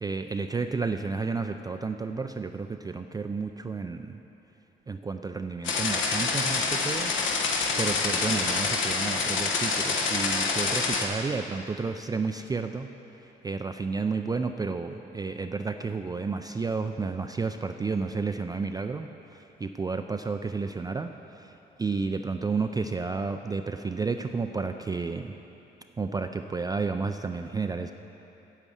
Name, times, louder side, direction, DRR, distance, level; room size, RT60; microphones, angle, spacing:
voice 1, 0.0-4.2 4.9-7.1 7.8-12.9 13.4-25.4 26.0-27.9, right 4 dB, 20° right, 6 dB, 0.3 m, -31 dB
sound 1, 5.6-11.1, left 4 dB, 75° left, 1.1 m, -27 dB
8.8 x 8.2 x 6.3 m, 3.0 s
cardioid pair, 90°, 20 cm